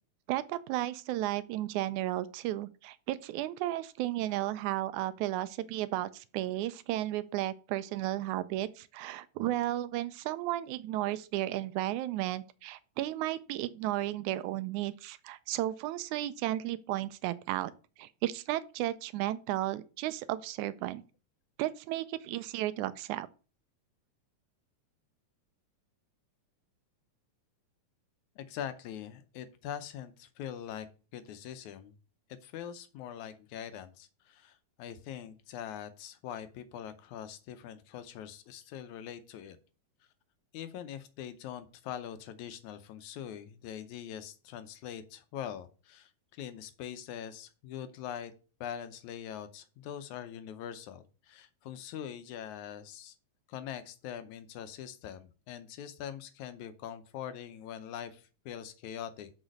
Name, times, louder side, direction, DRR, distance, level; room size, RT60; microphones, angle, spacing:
voice 1, 0.3-17.7 18.0-21.0 21.6-23.3, right 14 dB, 80° right, 1.9 m, -34 dB
voice 2, 28.4-30.9 31.1-32.0 32.3-39.6 40.5-48.3 48.6-53.1 53.5-59.3, left 9 dB, 75° left, 2.0 m, -43 dB
6.4 x 5.0 x 6.3 m
omnidirectional pair, 3.6 m